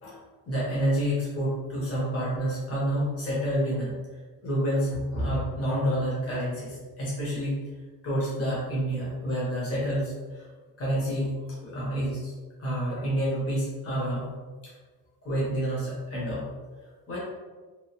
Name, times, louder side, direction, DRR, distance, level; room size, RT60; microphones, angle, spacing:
voice 1, 0.5-3.9 4.4-7.6 8.0-10.5 10.8-12.3 12.6-14.3 14.6-14.7 15.2-16.4 17.1-17.2, equal, 40° left, -7 dB, 1.1 m, -28 dB
3.1 x 2.4 x 3.0 m, 1.4 s
wide cardioid pair, 140°, 36 cm